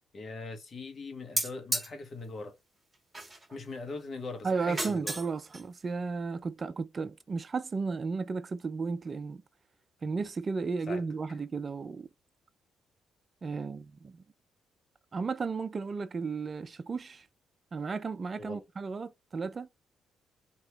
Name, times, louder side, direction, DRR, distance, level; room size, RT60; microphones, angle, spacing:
voice 1, 0.1-2.6 3.5-5.1 10.9-11.0 18.4-18.6, left 3 dB, 45° left, 1.4 m, -41 dB
sound 1, 1.4-1.9 3.1-3.6 4.6-5.3 5.5-5.6, right 2 dB, 20° right, 1.7 m, -33 dB
voice 2, 4.4-9.4 10.0-12.1 13.4-14.2 15.1-17.3 17.7-19.7, right 4 dB, 35° right, 0.4 m, -34 dB
3.1 x 2.9 x 4.4 m
cardioid pair, 90°, 0 cm